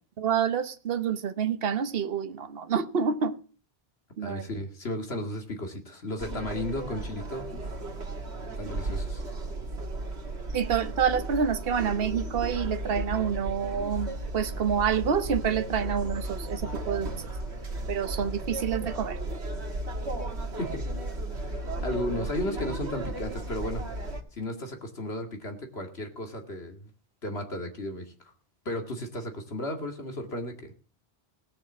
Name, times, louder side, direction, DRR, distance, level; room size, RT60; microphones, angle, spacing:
voice 1, 0.2-3.4 4.2-4.5 10.5-17.1 17.9-19.2, right 7 dB, 65° right, 1.1 m, -28 dB
voice 2, 4.2-7.7 8.6-9.2 20.6-20.9 21.4-23.8 24.3-26.9 27.2-28.1 28.7-30.7, left 1 dB, 75° left, 2.4 m, -34 dB
sound 1, 6.2-24.2, right 2 dB, 90° right, 2.0 m, -34 dB
18.0 x 6.8 x 7.2 m
omnidirectional pair, 1.1 m